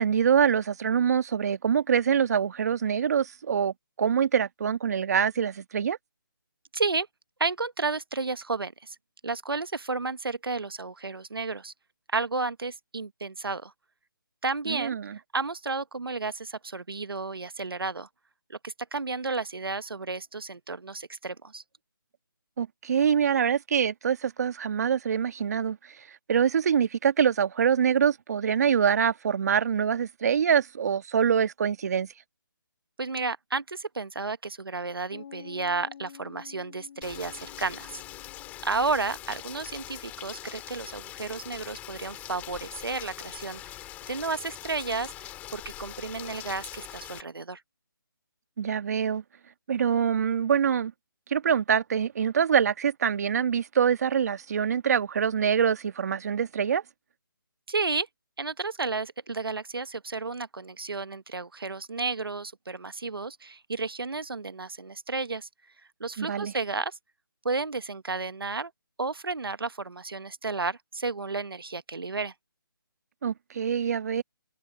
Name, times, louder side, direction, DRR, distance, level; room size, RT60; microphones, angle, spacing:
voice 1, 0.0-6.0 14.7-15.2 22.6-25.8 26.3-32.1 48.6-49.2 49.7-50.9 51.3-56.8 66.2-66.5 73.2-74.2, right 7 dB, 45° right, 1.5 m, -25 dB
voice 2, 6.7-7.1 7.4-8.9 9.2-11.7 12.1-13.7 14.4-18.1 18.5-21.6 33.0-38.0 38.6-43.7 44.1-47.6 57.7-58.1 58.4-65.5 66.0-67.0 67.4-68.7 69.0-72.3, right 3 dB, 90° right, 1.2 m, -32 dB
Piano, 35.1-42.3, left 8 dB, 40° left, 4.6 m, -51 dB
Rain, 37.0-47.2, left 15 dB, 15° left, 4.4 m, -43 dB
figure-of-eight pair, 160°, 12 cm